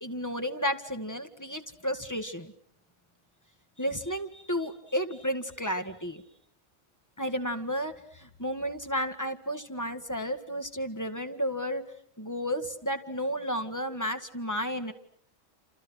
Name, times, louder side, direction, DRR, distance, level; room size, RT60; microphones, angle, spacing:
voice 1, 0.0-2.5 3.8-6.2 7.2-11.8 12.2-14.9, equal, 15° left, 7 dB, 1.8 m, -32 dB
29.5 x 28.0 x 6.4 m, 0.66 s
omnidirectional pair, 1.4 m